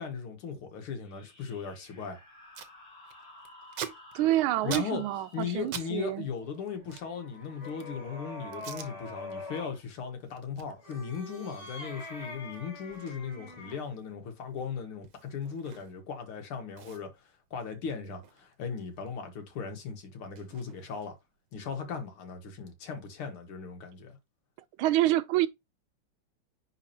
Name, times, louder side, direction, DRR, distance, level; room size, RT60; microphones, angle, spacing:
voice 1, 0.0-2.2 4.6-5.0 5.3-17.1 17.5-21.2 21.5-24.2, left 6 dB, 80° left, 2.4 m, -37 dB
sound 1, 1.0-8.2, left 1 dB, 55° left, 4.4 m, -55 dB
Packing tape duct tape, 2.0-2.1 2.3-2.7 3.1-5.9 6.2-8.0 8.5-8.9 9.4-9.6 9.9-16.2 16.4-16.5 16.8-19.1 19.4-21.4, right 8 dB, 60° right, 1.4 m, -46 dB
voice 2, 4.1-6.3 24.8-25.5, right 14 dB, 80° right, 1.4 m, -27 dB
sound 2, 6.8-9.8 10.7-13.9, left 2 dB, 30° left, 5.1 m, -44 dB
9.9 x 4.2 x 2.9 m
omnidirectional pair, 2.3 m